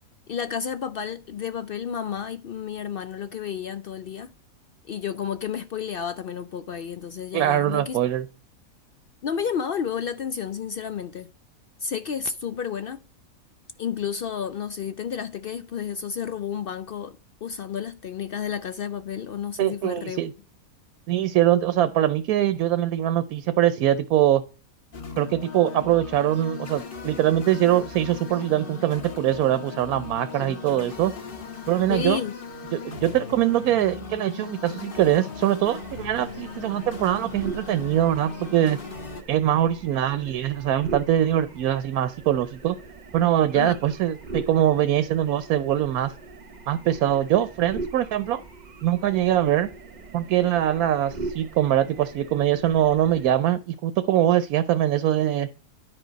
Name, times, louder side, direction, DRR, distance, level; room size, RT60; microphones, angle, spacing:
voice 1, 0.3-4.3 4.9-8.0 9.2-11.3 11.8-13.0 13.8-20.2 30.4-30.6 31.9-32.3 43.5-43.8, left 7 dB, 75° left, 0.5 m, -31 dB
voice 2, 7.3-8.3 19.6-20.3 21.1-24.4 25.2-31.1 31.7-32.2 32.7-38.8 39.3-42.8 43.1-46.1 46.7-48.4 48.8-49.7 50.1-55.5, right 12 dB, 80° right, 1.1 m, -23 dB
sound 1, 24.9-39.2, left 4 dB, 40° left, 1.5 m, -38 dB
sound 2, 35.7-53.3, right 3 dB, 35° right, 0.9 m, -41 dB
10.0 x 5.0 x 5.1 m
omnidirectional pair, 1.5 m